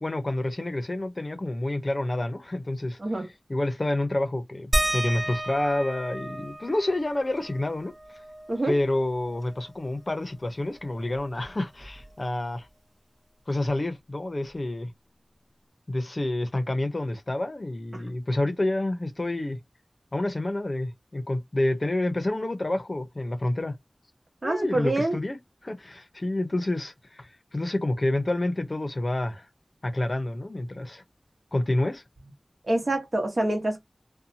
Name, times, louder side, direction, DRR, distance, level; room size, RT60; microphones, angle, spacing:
voice 1, 0.0-3.0 3.5-7.9 8.7-12.7 13.5-14.9 15.9-19.6 20.1-23.7 24.4-29.5 29.8-31.0 31.5-32.0, left 1 dB, 45° left, 0.7 m, -28 dB
sound 1, 4.7-9.9 10.2-10.3 10.6-12.4 13.7-13.8 14.5-14.6, right 1 dB, 25° right, 0.7 m, -33 dB
voice 2, 24.4-25.2 32.7-33.8, right 1 dB, 55° right, 1.0 m, -26 dB
2.8 x 2.2 x 2.6 m
wide cardioid pair, 50°, 0 cm